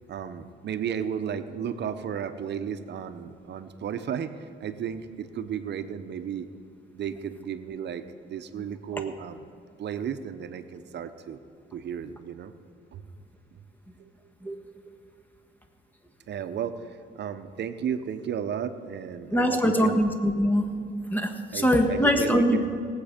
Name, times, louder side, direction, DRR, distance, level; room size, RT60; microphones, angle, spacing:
voice 1, 0.1-6.5 6.9-9.5 9.8-11.4 11.7-12.5 12.9-13.0 13.5-13.6 14.0-14.1 16.3-20.0 21.5-22.8, right 8 dB, 60° right, 10 dB, 0.8 m, -34 dB
voice 2, 19.3-20.7 21.1-22.6, equal, 10° left, 4 dB, 1.5 m, -23 dB
18.5 x 8.2 x 5.2 m, 2.4 s
cardioid pair, 90°, 20 cm